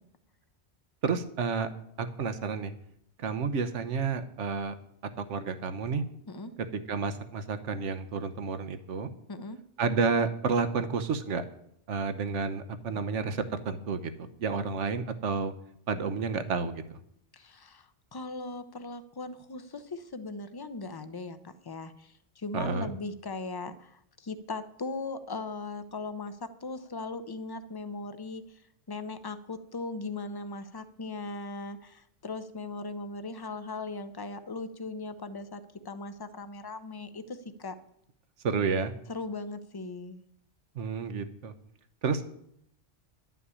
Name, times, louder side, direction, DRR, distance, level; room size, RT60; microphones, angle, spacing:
voice 1, 1.0-1.7 2.0-2.7 3.2-4.7 5.2-6.0 6.9-9.1 9.8-11.4 11.9-14.1 14.4-15.5 15.9-17.0 22.5-22.9 38.4-38.9 40.8-41.5 42.0-42.3, right 5 dB, 90° right, 11 dB, 1.2 m, -30 dB
voice 2, 17.3-28.6 28.9-37.7 39.1-40.2, left 3 dB, 30° left, 12 dB, 0.5 m, -39 dB
11.0 x 5.9 x 8.4 m, 0.72 s
omnidirectional pair, 1.2 m